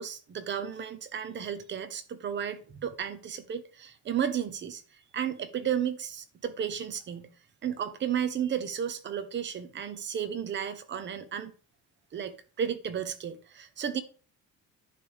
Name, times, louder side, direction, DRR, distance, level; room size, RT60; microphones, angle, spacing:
voice 1, 0.0-4.8 5.1-7.3 7.6-11.5 12.1-14.0, right 8 dB, 35° right, 1.0 m, -33 dB
10.5 x 3.5 x 6.4 m
cardioid pair, 155°, 33 cm